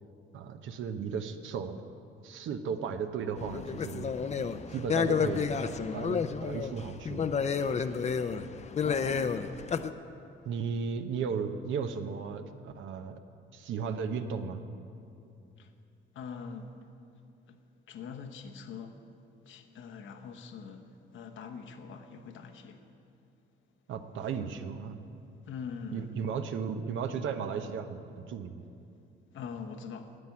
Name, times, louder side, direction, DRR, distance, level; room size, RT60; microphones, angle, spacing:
voice 1, 0.3-1.8 2.2-7.3 10.4-13.2 13.5-14.6 23.9-25.0 25.9-28.6, right 6 dB, 75° right, 0.8 m, -35 dB
sound 1, 3.4-9.9, left 6 dB, 35° left, 0.5 m, -31 dB
voice 2, 8.8-9.5 15.6-15.7 16.1-16.7 17.5-17.6 17.9-19.0 19.4-22.9 25.5-26.2 29.3-30.2, left 6 dB, 75° left, 1.1 m, -43 dB
9.8 x 9.2 x 8.4 m
cardioid pair, 90°, 20 cm